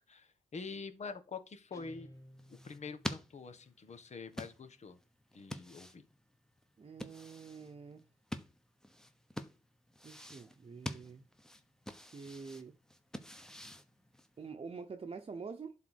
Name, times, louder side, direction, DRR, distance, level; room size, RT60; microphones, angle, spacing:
voice 1, 0.1-2.1 2.6-5.0 5.3-6.0, left 4 dB, 55° left, 1.4 m, -46 dB
Guitar, 1.7-3.4, left 1 dB, 25° left, 2.4 m, -56 dB
sound 1, 2.1-14.5, left 1 dB, 5° left, 1.1 m, -47 dB
voice 2, 6.8-8.0 10.0-11.2 11.9-12.7 14.4-15.7, right 5 dB, 45° right, 0.9 m, -47 dB
11.5 x 3.9 x 6.4 m
wide cardioid pair, 110°, 14 cm